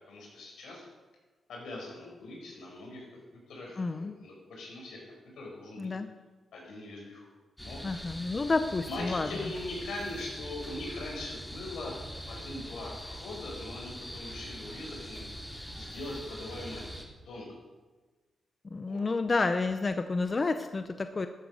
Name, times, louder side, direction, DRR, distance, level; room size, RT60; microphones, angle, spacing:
voice 1, 0.1-0.9 1.5-5.9 6.5-7.3 7.6-8.3 8.9-11.9 12.3-15.2 15.7-16.8 17.3-17.6 18.9-19.0, left 2 dB, 85° left, -2 dB, 5.2 m, -41 dB
voice 2, 3.8-4.2 5.8-6.1 7.8-9.3 18.7-21.3, left 3 dB, 35° left, 9 dB, 0.6 m, -30 dB
sound 1, 7.6-17.0, equal, 5° left, 2.3 m, -43 dB
13.5 x 8.8 x 6.4 m, 1.3 s
cardioid pair, 95°, 0 cm